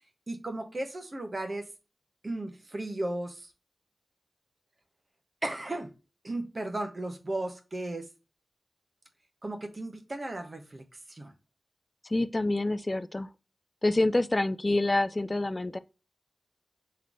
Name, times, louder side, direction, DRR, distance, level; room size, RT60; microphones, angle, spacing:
voice 1, 0.3-1.6 2.2-3.5 5.4-5.9 6.2-8.1 9.4-10.8 11.1-11.3, right 1 dB, 35° right, 1.0 m, -35 dB
voice 2, 12.0-13.3 13.8-15.8, left 2 dB, 30° left, 0.3 m, -27 dB
3.9 x 3.2 x 3.6 m
wide cardioid pair, 80°, 0 cm